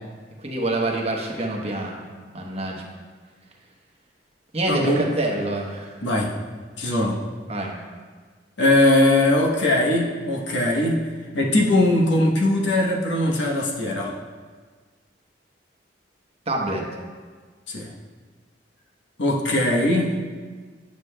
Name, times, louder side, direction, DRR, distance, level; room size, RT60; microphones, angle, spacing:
voice 1, 0.4-2.0 2.3-2.8 4.5-6.0 7.5-7.7 16.5-16.8, right 2 dB, 35° right, -1 dB, 0.9 m, -26 dB
voice 2, 4.7-5.1 6.0-6.3 6.8-7.2 8.6-11.0 11.3-14.1 17.7-17.9 19.2-20.2, left 1 dB, 80° left, -1 dB, 0.9 m, -20 dB
9.3 x 6.7 x 2.2 m, 1.5 s
head